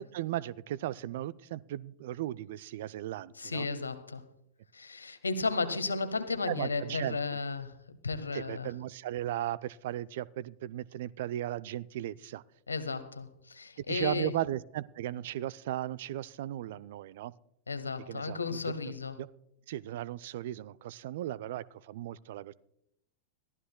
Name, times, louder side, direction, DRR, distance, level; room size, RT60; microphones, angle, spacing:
voice 1, 0.0-3.7 6.5-7.4 8.3-12.4 13.9-17.3 18.1-18.7 19.2-19.3 19.7-22.5, right 13 dB, 55° right, 20 dB, 0.4 m, -36 dB
voice 2, 3.4-4.3 4.7-8.7 12.7-14.3 17.7-19.2, left 4 dB, 75° left, 12 dB, 1.0 m, -34 dB
22.0 x 14.5 x 2.2 m, 0.78 s
figure-of-eight pair, 90°, 0 cm